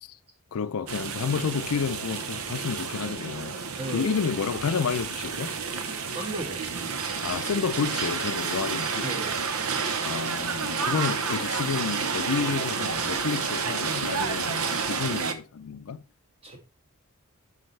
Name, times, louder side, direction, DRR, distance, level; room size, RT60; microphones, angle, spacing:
voice 1, 0.5-3.6 3.9-5.6 7.2-9.1 10.0-16.0, left 6 dB, 80° left, 0.5 m, -30 dB
sound 1, 0.9-15.3, right 5 dB, 75° right, 0.8 m, -30 dB
voice 2, 3.8-4.2 5.9-7.0 9.0-9.4 16.4-16.6, right 2 dB, 25° right, 1.6 m, -36 dB
7.8 x 5.5 x 3.2 m
head